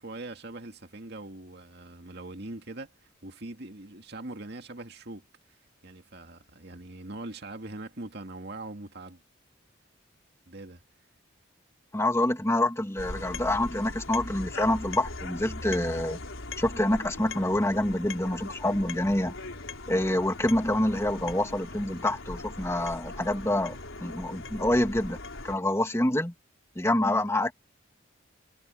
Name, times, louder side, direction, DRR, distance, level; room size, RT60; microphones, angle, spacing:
voice 1, 0.0-5.3 5.8-9.2 10.5-10.8, right 2 dB, 55° right, 2.2 m, -42 dB
voice 2, 11.9-16.2 16.6-19.3 19.9-25.2 25.4-26.3 26.8-27.5, left 1 dB, 15° left, 2.2 m, -27 dB
sound 1, 13.0-25.6, left 2 dB, 90° left, 3.8 m, -40 dB
head